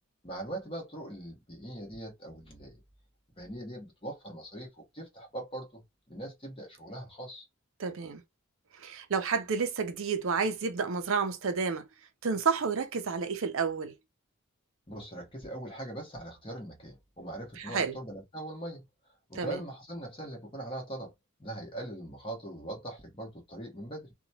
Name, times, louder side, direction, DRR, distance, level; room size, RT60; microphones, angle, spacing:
voice 1, 0.2-2.8 3.4-7.5 14.9-18.9 19.3-21.1 21.4-24.1, right 1 dB, 25° left, 1.2 m, -41 dB
voice 2, 7.8-8.2 8.8-11.8 12.2-13.9 17.6-17.9 19.3-19.6, right 5 dB, 65° right, 0.5 m, -30 dB
2.8 x 2.3 x 2.7 m
head